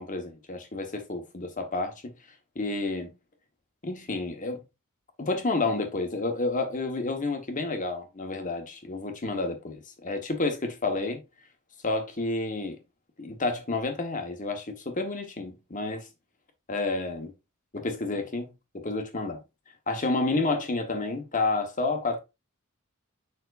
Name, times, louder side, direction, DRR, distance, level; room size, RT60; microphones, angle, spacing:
voice 1, 0.0-2.1 2.5-3.1 3.8-4.6 5.2-11.2 11.8-12.8 13.2-16.1 16.7-17.3 17.7-19.4 19.9-22.2, left 3 dB, 35° left, 1.3 m, -30 dB
7.0 x 5.5 x 2.6 m
head